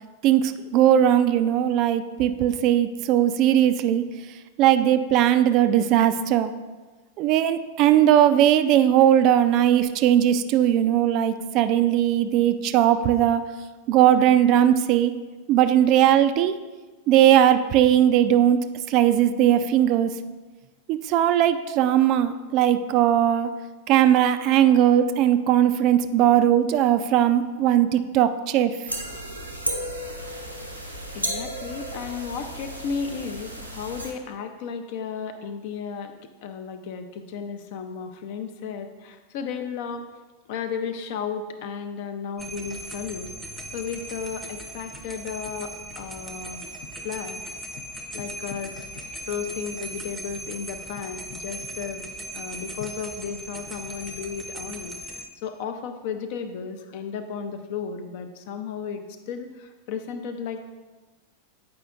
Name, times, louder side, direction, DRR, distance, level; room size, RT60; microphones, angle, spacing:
voice 1, 0.2-4.0 4.6-6.5 7.2-13.4 13.9-15.1 15.5-16.5 17.1-18.6 18.9-20.1 20.9-23.5 23.9-28.8, right 11 dB, 40° right, 10 dB, 0.3 m, -19 dB
sound 1, 28.9-34.1, right 1 dB, 90° right, 0.8 m, -33 dB
voice 2, 31.1-40.0 40.5-43.3 43.7-46.6 47.0-47.6 48.1-48.8 49.3-52.1 52.3-60.7, left 6 dB, 50° left, 7 dB, 0.5 m, -34 dB
sound 2, 42.4-55.3, right 1 dB, 5° right, 0.6 m, -38 dB
8.5 x 4.9 x 2.4 m, 1.3 s
figure-of-eight pair, 90°, 0 cm